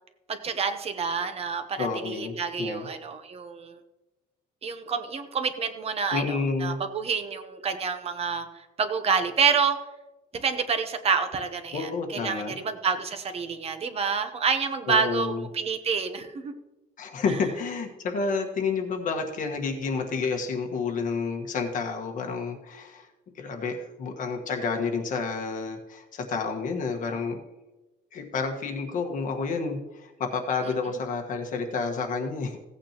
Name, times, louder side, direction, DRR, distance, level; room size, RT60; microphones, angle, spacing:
voice 1, 0.3-3.8 4.6-9.8 10.3-16.5 30.9-31.0, right 5 dB, 35° right, 8 dB, 0.9 m, -28 dB
voice 2, 1.8-2.9 6.1-6.8 11.7-12.6 14.9-15.4 17.0-23.1 23.3-27.4 28.1-32.6, left 4 dB, 50° left, 3 dB, 1.5 m, -30 dB
16.5 x 8.8 x 3.0 m, 1.0 s
cardioid pair, 160°, 17 cm